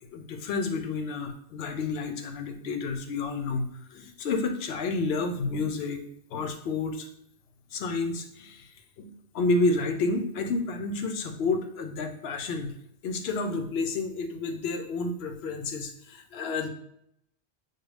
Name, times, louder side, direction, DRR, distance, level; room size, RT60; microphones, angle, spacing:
voice 1, 0.1-6.0 6.3-7.1 7.7-8.7 9.0-12.7 13.0-16.7, left 3 dB, 70° left, 6 dB, 0.8 m, -30 dB
6.1 x 2.4 x 3.2 m, 0.73 s
omnidirectional pair, 1.2 m